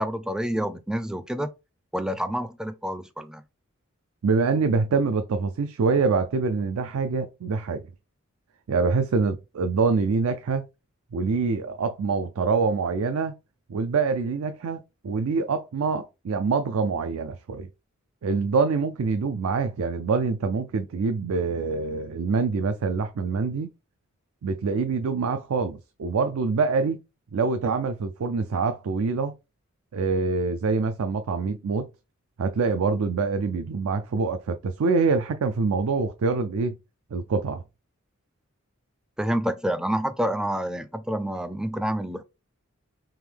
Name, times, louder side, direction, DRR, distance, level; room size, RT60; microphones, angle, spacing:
voice 1, 0.0-1.5 1.9-3.4 39.2-42.2, equal, 5° right, 0.3 m, -28 dB
voice 2, 4.2-7.8 8.7-10.6 11.1-13.3 13.7-17.7 18.2-23.7 24.4-27.0 27.3-29.3 29.9-31.9 32.4-36.8 37.1-37.6, right 4 dB, 90° right, 0.4 m, -25 dB
3.6 x 2.9 x 3.3 m
head